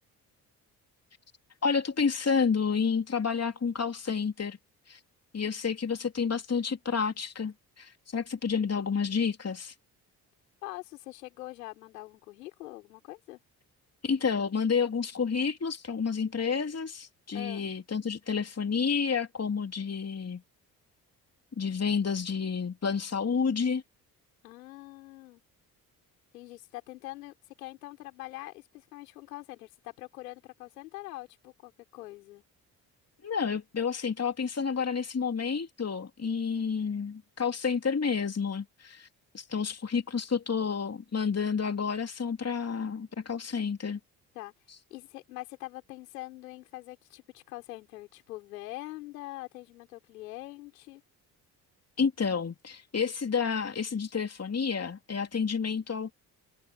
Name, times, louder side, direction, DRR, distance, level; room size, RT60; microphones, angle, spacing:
voice 1, 1.6-4.6 4.9-5.0 5.3-9.7 14.0-20.4 21.6-23.8 33.2-39.1 39.3-44.0 52.0-56.1, left 6 dB, 30° left, 3.0 m, -30 dB
voice 2, 10.6-13.4 17.3-17.6 24.4-25.4 26.3-32.4 44.3-44.5 44.9-51.0, left 18 dB, 85° left, 5.7 m, -44 dB
hypercardioid pair, 45°, 47 cm